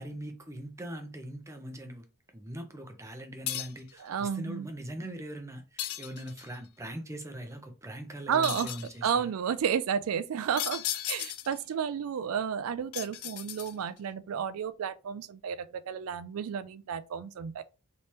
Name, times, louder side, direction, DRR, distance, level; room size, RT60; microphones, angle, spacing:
voice 1, 0.0-2.1 2.3-9.3, right 1 dB, 15° right, 0.6 m, -41 dB
sound 1, 3.5-3.9 5.8-6.5 8.4-9.0 10.6-11.6 12.9-14.0, left 12 dB, 80° left, 0.4 m, -36 dB
voice 2, 4.0-4.7 8.3-8.7 9.0-17.6, right 7 dB, 70° right, 0.3 m, -32 dB
3.3 x 3.0 x 2.8 m
head